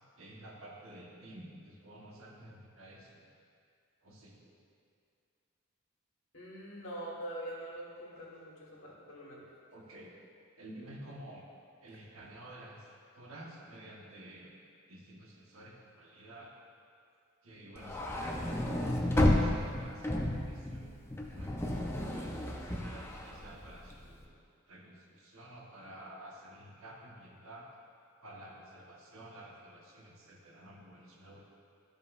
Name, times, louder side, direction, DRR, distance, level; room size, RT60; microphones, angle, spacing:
voice 1, 0.2-3.3 4.0-4.6 9.7-10.1 10.6-11.4 11.8-12.8 13.2-14.5 14.9-16.5 17.4-18.7 19.0-21.8 22.1-24.4 24.7-27.7 28.2-31.4, right 1 dB, 80° right, -2 dB, 1.2 m, -51 dB
voice 2, 6.3-9.4, right 1 dB, 65° left, -5 dB, 1.8 m, -44 dB
sound 1, 17.8-24.1, left 1 dB, 10° left, 0.5 m, -32 dB
13.0 x 5.2 x 2.5 m, 2.3 s
head